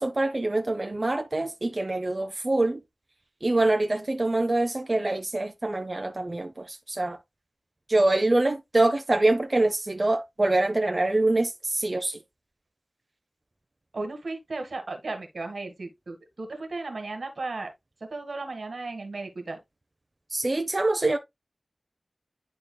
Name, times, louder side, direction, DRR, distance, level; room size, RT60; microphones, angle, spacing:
voice 1, 0.0-2.8 3.4-7.2 7.9-12.2 20.3-21.2, right 2 dB, 40° right, 0.7 m, -25 dB
voice 2, 13.9-17.7 18.0-19.6, right 3 dB, 80° right, 1.7 m, -35 dB
11.0 x 3.8 x 2.2 m
wide cardioid pair, 55°, 0 cm